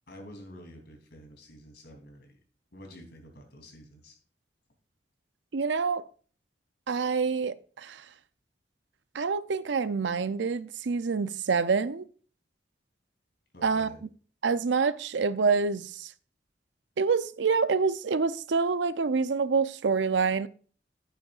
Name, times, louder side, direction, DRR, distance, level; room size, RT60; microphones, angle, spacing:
voice 1, 0.1-2.4 2.7-4.2 13.5-14.0, equal, 65° left, 3.2 m, -49 dB
voice 2, 5.5-6.0 6.9-8.0 9.1-12.1 13.6-13.9 14.4-16.1 17.0-20.5, right 5 dB, 80° right, 0.5 m, -27 dB
11.0 x 9.1 x 2.5 m
head